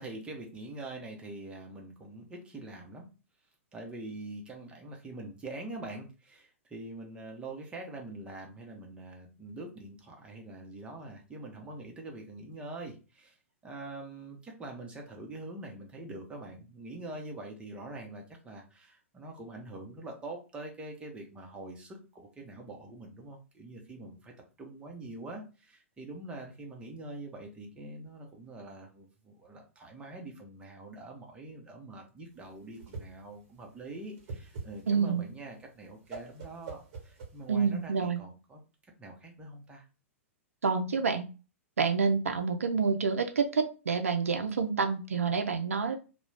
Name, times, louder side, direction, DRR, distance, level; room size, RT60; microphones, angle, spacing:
voice 1, 0.0-3.1 3.7-13.4 13.6-24.3 24.6-38.6 39.0-39.9, right 2 dB, 15° right, 1 dB, 0.7 m, -44 dB
Whoosh swoosh swish, 32.3-37.8, right 4 dB, 40° right, 1.0 m, -45 dB
voice 2, 34.9-35.2 37.5-38.2 40.6-41.3 41.8-46.0, right 5 dB, 75° right, 6 dB, 0.4 m, -28 dB
2.3 x 2.1 x 3.2 m, 0.33 s
figure-of-eight pair, 105°, 8 cm